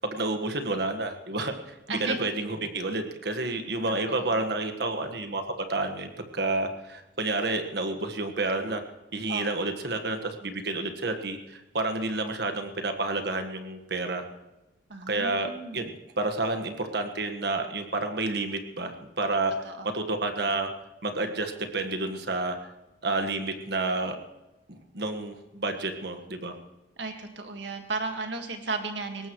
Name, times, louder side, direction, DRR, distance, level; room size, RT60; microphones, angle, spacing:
voice 1, 0.0-8.8 9.1-14.2 15.1-15.9 16.2-20.7 21.0-22.6 23.0-24.2 24.7-26.5, right 2 dB, 65° right, 6 dB, 1.6 m, -30 dB
voice 2, 14.9-15.8 19.6-19.9 27.0-29.3, right 3 dB, 80° right, 4 dB, 1.8 m, -34 dB
21.5 x 18.0 x 3.2 m, 1.0 s
head